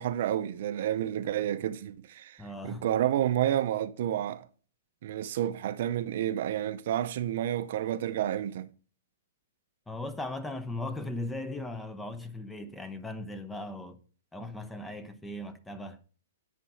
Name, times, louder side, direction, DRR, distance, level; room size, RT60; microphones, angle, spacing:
voice 1, 0.0-4.5 5.0-8.7, right 11 dB, 60° right, 0.6 m, -30 dB
voice 2, 2.4-2.9 9.9-14.0 14.3-16.0, left 2 dB, 5° left, 0.7 m, -38 dB
10.0 x 4.3 x 5.7 m
hypercardioid pair, 130°, 0 cm